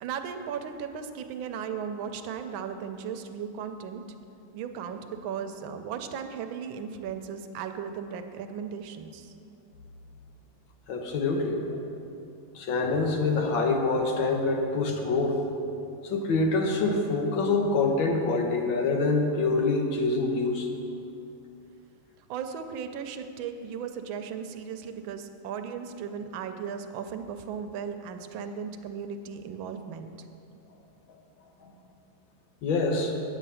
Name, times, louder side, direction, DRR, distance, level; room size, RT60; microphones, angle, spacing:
voice 1, 0.0-4.0 4.5-9.3 22.3-30.1, right 7 dB, 80° right, 8 dB, 1.4 m, -36 dB
voice 2, 10.9-11.8 12.5-15.4 16.0-20.7 31.6-31.7 32.6-33.1, left 3 dB, 75° left, 2 dB, 1.7 m, -26 dB
9.1 x 8.0 x 5.5 m, 2.7 s
omnidirectional pair, 2.2 m